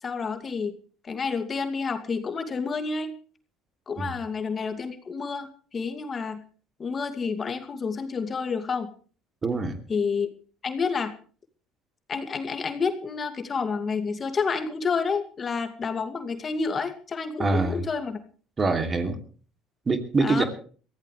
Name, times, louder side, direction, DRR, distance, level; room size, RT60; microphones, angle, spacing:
voice 1, 0.0-0.7 1.0-3.1 3.9-6.4 6.8-8.9 9.9-10.3 10.6-11.1 12.1-18.2 20.2-20.4, left 5 dB, 35° left, 7 dB, 2.4 m, -29 dB
voice 2, 9.4-9.8 17.4-17.8 18.6-19.2 19.9-20.4, right 3 dB, 30° right, 7 dB, 2.9 m, -24 dB
22.5 x 15.5 x 3.3 m, 0.41 s
supercardioid pair, 85°, 0 cm